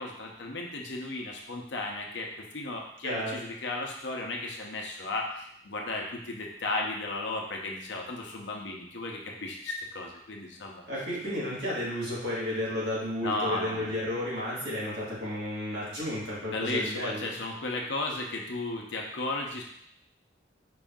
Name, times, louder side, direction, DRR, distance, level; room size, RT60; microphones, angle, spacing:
voice 1, 0.0-2.3 2.5-10.8 13.2-13.9 16.5-19.6, left 2 dB, 75° left, 0 dB, 0.8 m, -34 dB
voice 2, 3.0-3.5 10.9-17.4, left 1 dB, 65° right, -7 dB, 1.8 m, -32 dB
5.0 x 2.6 x 3.6 m, 0.71 s
head